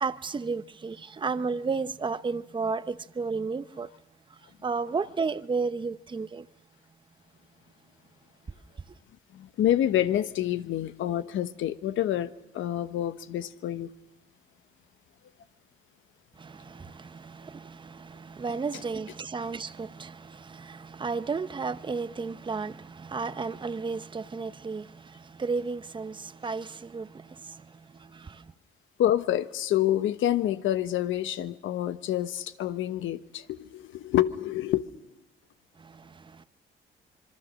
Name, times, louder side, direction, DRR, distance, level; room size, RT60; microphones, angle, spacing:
voice 1, 0.0-3.9 4.6-6.5 16.4-28.5 35.8-36.4, right 4 dB, 25° right, 0.8 m, -33 dB
voice 2, 9.3-13.9 29.0-34.9, left 12 dB, 80° left, 1.1 m, -27 dB
25.5 x 22.5 x 6.4 m
cardioid pair, 90°, 20 cm